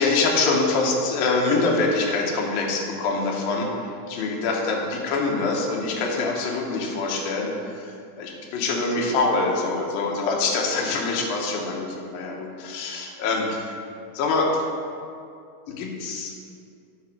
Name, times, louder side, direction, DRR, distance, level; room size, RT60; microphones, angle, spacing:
voice 1, 0.0-13.8 14.1-14.6 15.7-16.3, left 3 dB, 85° left, -1 dB, 2.7 m, -25 dB
8.8 x 3.5 x 6.3 m, 2.4 s
omnidirectional pair, 4.1 m